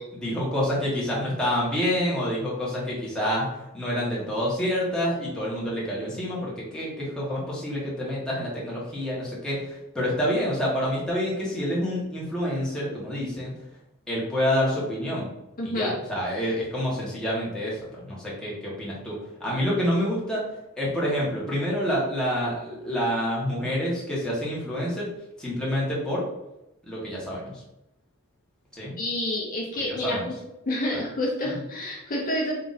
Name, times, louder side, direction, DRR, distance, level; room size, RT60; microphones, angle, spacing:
voice 1, 0.1-3.4 3.7-13.5 14.1-15.3 15.6-20.4 20.8-25.1 25.4-26.2 26.8-27.5 28.7-29.0 29.8-30.3, equal, 5° left, -6 dB, 1.3 m, -27 dB
voice 2, 15.6-16.0 29.0-30.4 30.7-32.6, left 1 dB, 40° left, -3 dB, 0.8 m, -28 dB
3.8 x 2.8 x 4.0 m, 0.90 s
head